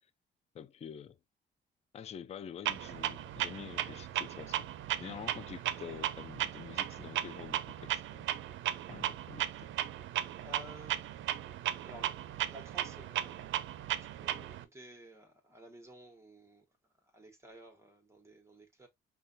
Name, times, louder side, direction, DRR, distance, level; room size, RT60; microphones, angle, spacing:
voice 1, 0.5-1.2 1.9-4.7 5.0-8.3 8.9-9.7, left 8 dB, 35° left, 0.4 m, -47 dB
Clock, 2.6-14.6, right 12 dB, 75° right, 0.5 m, -36 dB
voice 2, 10.4-13.5 14.0-16.6 17.0-18.9, right 1 dB, 15° right, 1.3 m, -54 dB
5.5 x 2.3 x 2.6 m
cardioid pair, 90°, 20 cm